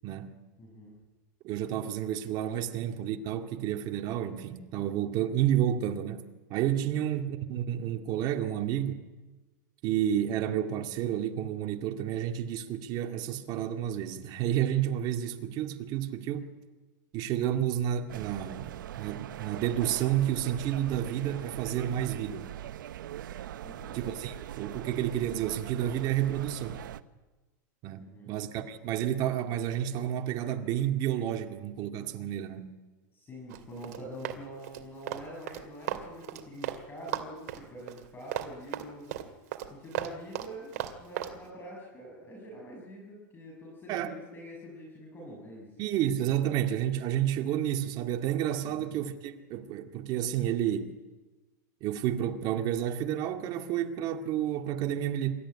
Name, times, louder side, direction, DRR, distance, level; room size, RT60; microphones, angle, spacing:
voice 1, 0.0-0.4 1.4-9.0 9.8-16.5 17.1-22.5 23.9-26.8 27.8-32.7 43.9-44.1 45.8-51.0 51.8-55.3, right 11 dB, 40° right, 2.1 m, -30 dB
voice 2, 0.6-0.9 2.7-2.8 23.6-24.0 28.0-28.3 33.1-39.1 39.7-45.8 48.6-49.0, equal, 20° left, 6.6 m, -45 dB
sound 1, 18.1-27.0, right 12 dB, 85° right, 1.0 m, -41 dB
Run, 33.5-36.8 37.1-41.3, right 13 dB, 60° right, 2.5 m, -36 dB
26.0 x 14.0 x 10.0 m
supercardioid pair, 140°, 10 cm